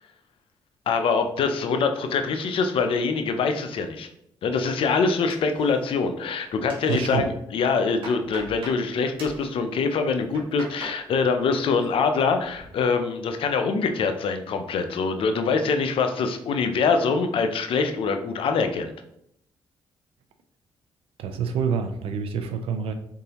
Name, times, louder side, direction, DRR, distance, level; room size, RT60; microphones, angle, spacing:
voice 1, 0.9-4.1 4.4-18.9, left 4 dB, 70° left, 7 dB, 0.6 m, -24 dB
sound 1, 5.3-6.1 6.4-7.2 7.6-8.8 9.2-9.5 10.1-11.0 11.4-11.9 12.2-12.7, right 1 dB, 65° right, 1.6 m, -42 dB
voice 2, 6.9-7.3 21.2-22.9, right 6 dB, 80° right, 8 dB, 0.5 m, -27 dB
3.8 x 3.7 x 2.9 m, 0.73 s
cardioid pair, 70°, 10 cm